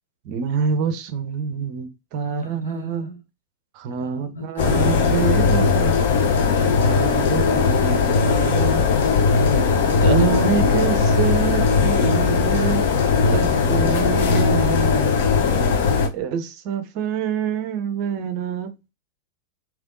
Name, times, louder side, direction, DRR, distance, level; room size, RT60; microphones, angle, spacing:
voice 1, 0.2-3.1 3.7-6.0 6.8-8.9 10.0-12.9 13.2-15.4 16.1-18.9, right 7 dB, 45° right, 0.6 m, -26 dB
voice 2, 2.2-3.2 4.0-6.3 9.3-10.6, left 1 dB, 75° left, 1.1 m, -33 dB
sound 1, 4.6-16.1, left 5 dB, 55° left, 0.6 m, -18 dB
3.4 x 3.0 x 2.5 m
figure-of-eight pair, 90°, 0 cm